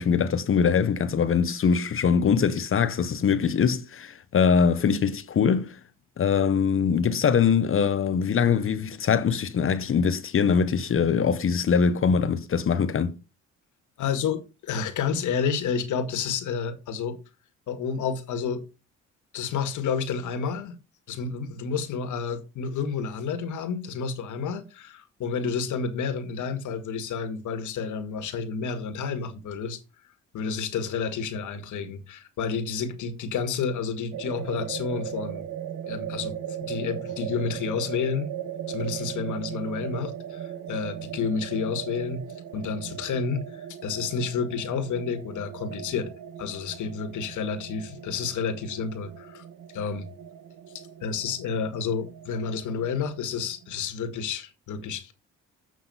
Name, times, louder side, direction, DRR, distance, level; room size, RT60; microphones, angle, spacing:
voice 1, 0.0-5.8 6.2-13.2, left 6 dB, 45° left, 0.8 m, -23 dB
voice 2, 14.0-17.2 17.7-18.6 19.3-20.8 21.1-29.8 30.3-35.5 35.9-38.3 38.7-42.2 42.5-46.1 46.4-49.4 49.7-50.1 51.0-55.1, left 6 dB, 75° left, 1.9 m, -30 dB
sound 1, 34.1-53.7, right 9 dB, 80° right, 1.2 m, -38 dB
8.0 x 6.0 x 5.5 m
cardioid pair, 90°, 30 cm